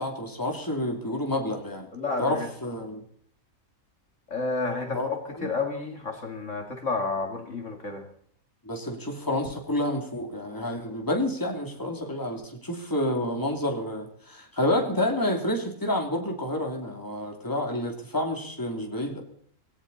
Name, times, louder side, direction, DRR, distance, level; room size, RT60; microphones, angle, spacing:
voice 1, 0.0-1.9 2.2-3.0 4.9-5.1 5.4-5.5 8.6-19.2, left 1 dB, 15° left, 2 dB, 2.8 m, -29 dB
voice 2, 1.9-2.5 4.3-8.1, left 3 dB, 55° left, 4 dB, 2.5 m, -31 dB
18.0 x 17.0 x 4.1 m, 0.63 s
omnidirectional pair, 1.5 m